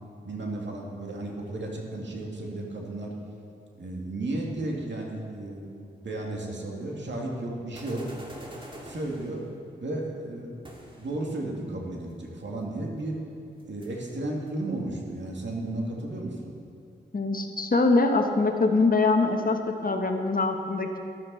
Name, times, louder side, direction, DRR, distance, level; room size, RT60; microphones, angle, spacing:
voice 1, 0.2-3.2 3.8-5.7 6.0-8.1 8.8-9.5 9.8-10.6 11.0-13.2 13.7-16.5, right 2 dB, 65° right, -1 dB, 2.3 m, -33 dB
sound 1, 7.7-9.5 10.6-11.2 12.7-12.8 13.2-13.3 13.6-13.9 14.4-16.2, right 1 dB, 25° right, 2.2 m, -46 dB
voice 2, 17.1-21.0, left 3 dB, 45° left, 4 dB, 1.2 m, -23 dB
12.5 x 11.5 x 4.1 m, 2.5 s
cardioid pair, 50°, 20 cm